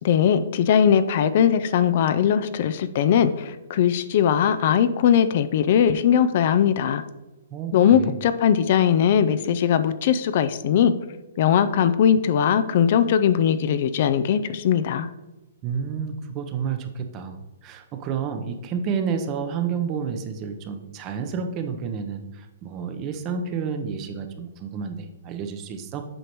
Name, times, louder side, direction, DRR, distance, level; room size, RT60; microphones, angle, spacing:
voice 1, 0.0-7.0 7.7-10.9 11.4-15.1, left 8 dB, 55° left, 12 dB, 0.4 m, -20 dB
voice 2, 7.5-8.2 15.6-26.0, right 6 dB, 30° right, 7 dB, 0.8 m, -30 dB
7.8 x 5.1 x 3.0 m, 1.1 s
hypercardioid pair, 135°, 0 cm